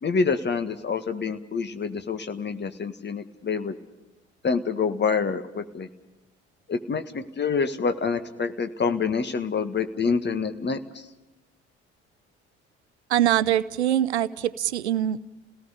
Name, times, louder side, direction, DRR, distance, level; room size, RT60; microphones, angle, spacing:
voice 1, 0.0-3.7 4.4-5.9 6.7-11.0, left 5 dB, 30° left, 9 dB, 1.7 m, -27 dB
voice 2, 13.1-15.2, right 11 dB, 85° right, 17 dB, 0.6 m, -23 dB
30.0 x 18.0 x 5.1 m, 1.0 s
figure-of-eight pair, 50°, 33 cm